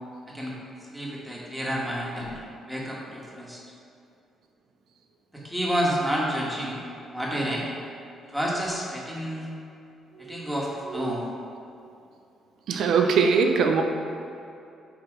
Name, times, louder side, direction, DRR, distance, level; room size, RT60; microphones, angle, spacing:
voice 1, 0.3-0.6 0.9-2.4 2.7-3.6 5.3-6.8 7.1-7.7 8.3-9.5 10.2-11.2, equal, 5° right, -4 dB, 1.6 m, -29 dB
voice 2, 10.2-10.5 10.8-11.4 12.7-13.8, right 5 dB, 75° right, 4 dB, 0.7 m, -23 dB
9.6 x 3.3 x 5.0 m, 2.6 s
cardioid pair, 90°, 0 cm